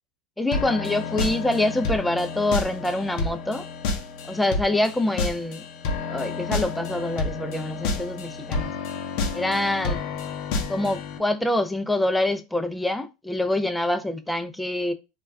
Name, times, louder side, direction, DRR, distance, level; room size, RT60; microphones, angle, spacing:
voice 1, 0.4-3.6 4.3-5.6 6.1-8.7 9.3-10.0 10.7-14.9, left 1 dB, 5° left, 0.3 m, -25 dB
sound 1, 0.5-11.2, left 4 dB, 65° left, 0.6 m, -30 dB
2.2 x 2.2 x 3.3 m
supercardioid pair, 105°, 0 cm